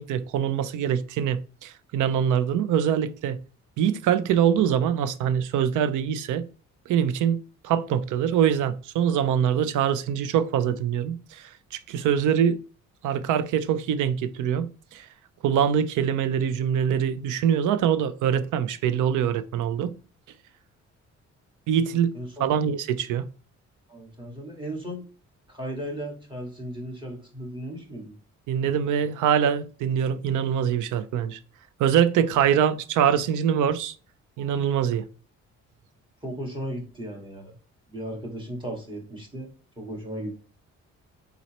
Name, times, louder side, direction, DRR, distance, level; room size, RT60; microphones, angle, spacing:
voice 1, 0.0-3.4 3.8-6.4 6.9-12.6 13.0-15.1 15.4-19.9 21.7-23.2 28.5-31.4 31.8-33.9 34.4-35.1, right 8 dB, 80° right, 0.5 m, -24 dB
voice 2, 22.1-22.6 23.9-25.0 25.5-28.1 36.2-37.5 37.9-39.5 39.8-40.3, right 1 dB, 15° right, 1.9 m, -36 dB
4.2 x 4.0 x 3.0 m
cardioid pair, 90°, 30 cm